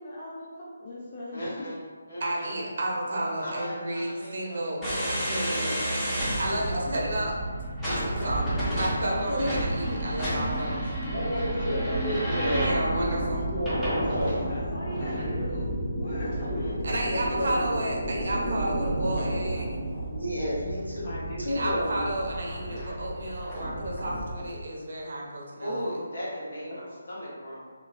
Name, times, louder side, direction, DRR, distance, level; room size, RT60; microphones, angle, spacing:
voice 1, 0.0-1.7 6.5-6.9 11.3-11.5 14.1-15.7 16.0-16.4 21.0-21.8 26.7-26.8, left 1 dB, 35° left, -7 dB, 0.4 m, -39 dB
voice 2, 1.3-1.8 2.1-2.5 3.4-5.7 13.3-13.7 14.9-15.2 16.3-16.8 17.1-17.5 25.6-27.7, equal, 55° left, -7 dB, 1.1 m, -38 dB
voice 3, 2.2-5.8 6.4-7.3 7.8-8.5 8.7-10.9 12.6-13.5 16.8-19.7 21.5-25.8, right 1 dB, 50° right, -2 dB, 0.6 m, -32 dB
sound 1, 4.8-24.5, right 1 dB, 5° left, 0.8 m, -31 dB
voice 4, 6.7-7.2 9.0-9.5 11.1-12.7 13.5-14.4 17.1-17.7 20.1-22.1, equal, 85° left, -6 dB, 0.9 m, -31 dB
2.9 x 2.7 x 2.5 m, 1.5 s
figure-of-eight pair, 145°, 0 cm